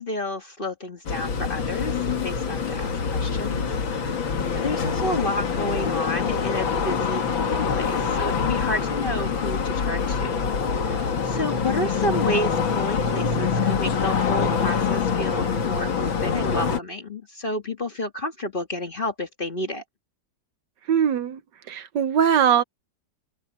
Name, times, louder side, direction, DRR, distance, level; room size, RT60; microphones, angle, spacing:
voice 1, 0.0-10.5 10.8-19.8, left 1 dB, 30° left, 1.5 m, -31 dB
sound 1, 1.1-16.8, left 6 dB, 85° left, 2.7 m, -25 dB
voice 2, 20.9-21.4 21.7-22.6, right 8 dB, 70° right, 1.4 m, -20 dB
omnidirectional pair, 2.1 m